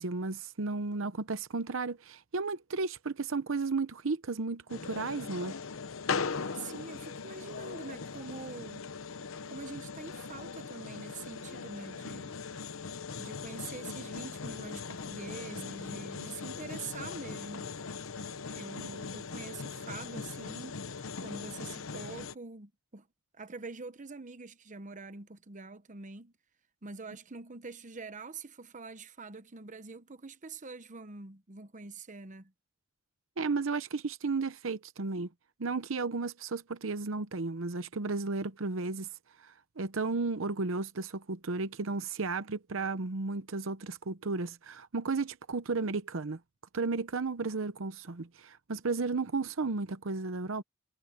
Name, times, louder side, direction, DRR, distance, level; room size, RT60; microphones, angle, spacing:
voice 1, 0.0-5.6 33.4-35.3 35.6-39.1 39.4-46.4 46.7-50.6, right 3 dB, 65° right, 0.8 m, -34 dB
sound 1, 4.7-22.4, left 5 dB, 70° left, 0.9 m, -40 dB
voice 2, 6.5-8.8 9.5-12.4 13.2-17.7 18.5-20.8 21.2-23.1 23.3-26.3 26.8-32.5, right 4 dB, 35° right, 1.0 m, -45 dB
head